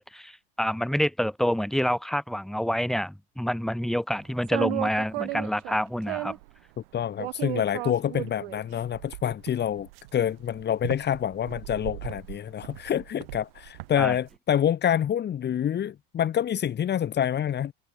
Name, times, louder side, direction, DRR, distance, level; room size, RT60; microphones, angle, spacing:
voice 1, 0.0-6.4 14.0-14.1, equal, ahead, 4.9 m, -27 dB
sound 1, 4.4-6.5 7.2-14.2, right 22 dB, 75° right, 4.6 m, -35 dB
voice 2, 6.9-17.7, left 9 dB, 35° left, 2.8 m, -27 dB
supercardioid pair, 95°, 29 cm